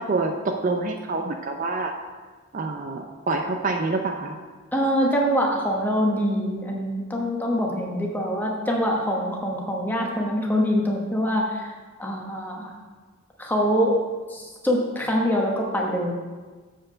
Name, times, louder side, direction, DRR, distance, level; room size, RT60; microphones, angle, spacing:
voice 1, 0.0-1.9 2.5-4.4, right 3 dB, 40° right, 3 dB, 0.5 m, -27 dB
voice 2, 4.7-11.7 12.0-12.7 13.4-14.0 14.3-16.1, equal, 10° left, -1 dB, 1.1 m, -24 dB
7.5 x 4.6 x 6.3 m, 1.4 s
head